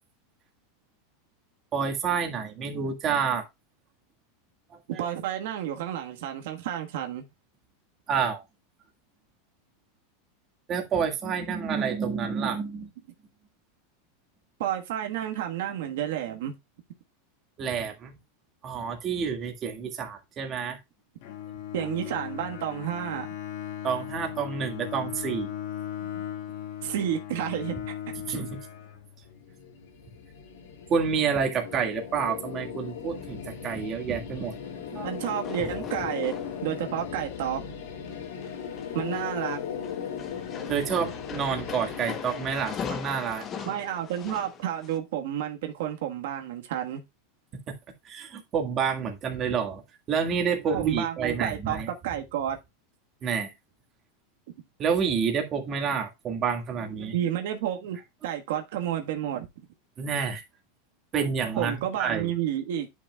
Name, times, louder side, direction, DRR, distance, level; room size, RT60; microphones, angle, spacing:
voice 1, 1.7-3.4 4.7-5.0 8.1-8.4 10.7-12.9 17.6-18.1 18.6-20.8 23.8-25.5 26.0-26.1 28.3-28.6 30.9-34.5 34.9-35.1 35.6-35.7 40.7-43.7 48.0-49.8 50.1-51.9 53.2-53.5 54.8-57.1 60.0-60.4 61.1-62.3, right 6 dB, 25° right, 1.8 m, -29 dB
voice 2, 5.0-7.2 14.6-16.5 21.7-23.3 26.8-27.9 35.0-37.6 38.9-39.6 43.6-47.0 50.7-52.6 57.1-58.0 58.2-59.5 61.6-62.9, right 10 dB, 70° right, 1.3 m, -31 dB
Bowed string instrument, 21.2-29.4, left 10 dB, 55° left, 1.8 m, -37 dB
sound 1, 29.3-44.3, left 7 dB, 85° left, 2.6 m, -38 dB
sound 2, 35.2-36.9 37.3-37.7 38.1-45.0, left 7 dB, 25° left, 0.9 m, -40 dB
10.0 x 6.1 x 2.3 m
supercardioid pair, 160°, 0 cm